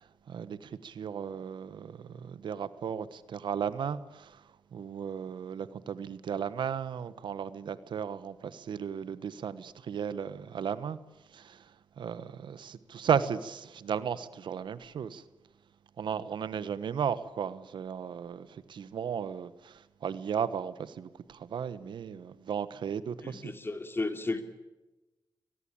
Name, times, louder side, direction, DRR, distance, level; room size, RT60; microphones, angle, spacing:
voice 1, 0.3-4.4 4.7-11.0 11.3-11.6 12.0-15.2 16.0-23.5, right 7 dB, 80° right, 1.2 m, -35 dB
voice 2, 23.2-24.4, left 2 dB, 30° left, 3.0 m, -34 dB
23.5 x 20.0 x 8.8 m
cardioid pair, 75°, 8 cm